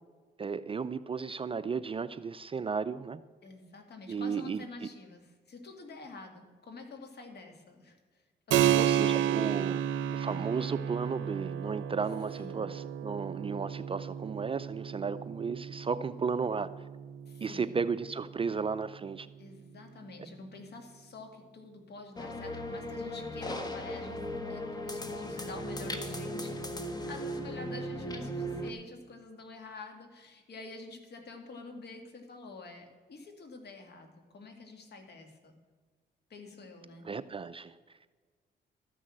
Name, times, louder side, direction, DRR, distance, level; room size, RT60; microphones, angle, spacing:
voice 1, 0.4-3.2 4.1-4.7 8.8-9.8 10.1-16.9 17.4-19.3 37.0-37.8, right 5 dB, 25° right, 13 dB, 0.4 m, -34 dB
voice 2, 3.4-8.2 8.5-9.8 12.4-12.7 17.3-17.8 19.4-24.2 24.5-26.7 27.1-35.5 36.3-37.1, left 3 dB, 55° left, 4 dB, 2.2 m, -47 dB
Keyboard (musical), 8.5-18.7, right 10 dB, 75° right, 0.6 m, -32 dB
sound 1, 22.2-28.7, equal, 20° left, 1.3 m, -37 dB
13.0 x 6.3 x 7.6 m, 1.5 s
cardioid pair, 90°, 20 cm